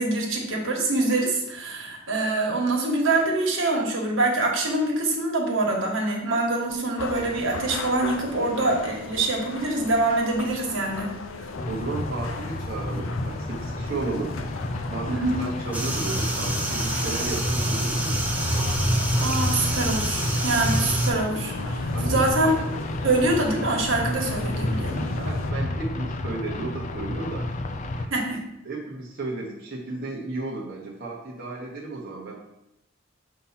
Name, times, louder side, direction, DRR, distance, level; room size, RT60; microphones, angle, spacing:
voice 1, 0.0-11.1 15.1-15.4 19.2-22.6 23.0-25.0 28.1-28.4, right 2 dB, 80° right, -1 dB, 1.5 m, -25 dB
sound 1, 7.0-25.5, left 3 dB, 85° left, 0.6 m, -38 dB
sound 2, 11.6-28.1, left 1 dB, 40° left, 0.4 m, -31 dB
voice 2, 11.7-14.4 14.9-18.2 21.9-22.5 24.9-27.6 27.9-28.1 28.6-32.4, right 3 dB, 50° right, -4 dB, 0.9 m, -34 dB
sound 3, 15.7-21.1, right 1 dB, 10° right, 0.8 m, -26 dB
6.8 x 2.8 x 5.7 m, 0.87 s
head